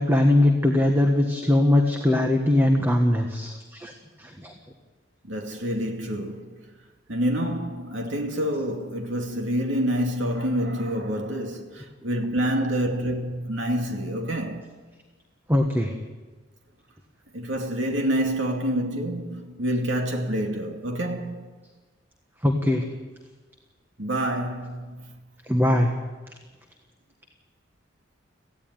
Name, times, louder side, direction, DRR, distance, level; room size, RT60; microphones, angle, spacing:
voice 1, 0.0-4.5 15.5-15.9 22.4-22.8 25.5-25.9, left 1 dB, 10° right, 1.5 m, -21 dB
voice 2, 5.2-6.6 7.1-14.7 17.3-21.5 24.0-25.1, equal, 75° right, 2.5 m, -27 dB
18.0 x 15.5 x 9.5 m
head